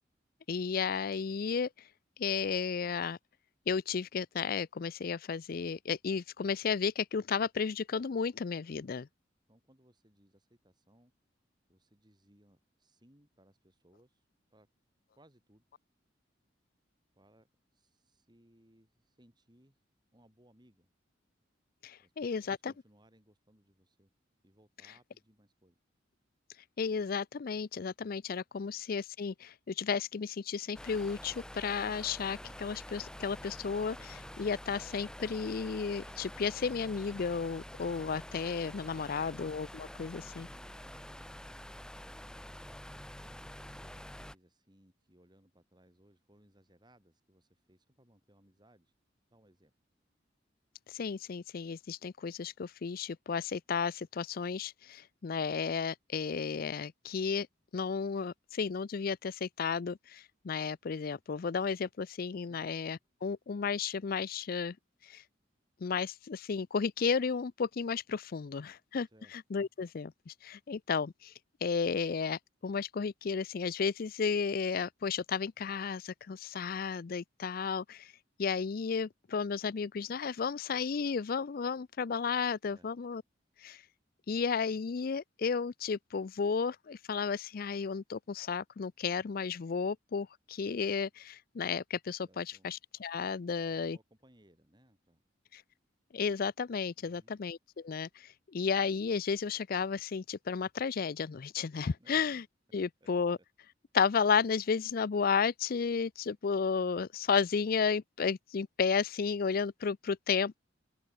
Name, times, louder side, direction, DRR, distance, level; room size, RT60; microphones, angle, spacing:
voice 1, 0.5-1.7 2.2-3.2 3.7-9.1 21.8-22.7 26.8-40.5 50.9-57.5 57.7-64.8 65.1-65.2 65.8-69.1 69.5-71.3 71.6-78.1 78.4-83.2 83.6-83.8 84.3-94.0 95.5-95.6 96.1-97.6 97.8-102.4 102.7-103.4 103.9-110.6, left 5 dB, 50° left, 0.4 m, -33 dB
voice 2, 9.5-11.1 11.7-14.7 15.2-15.6 17.1-19.8 20.1-20.9 22.0-24.1 24.4-25.8 28.5-28.8 40.3-42.1 43.4-48.9 49.3-49.7 62.5-62.7 69.1-69.3 82.7-82.9 92.2-92.7 93.5-95.2 97.0-97.4 102.0-102.2 103.0-103.1 103.4-103.5, right 1 dB, 25° right, 6.0 m, -65 dB
Big Fan, 30.7-44.3, left 1 dB, 5° left, 0.8 m, -47 dB
head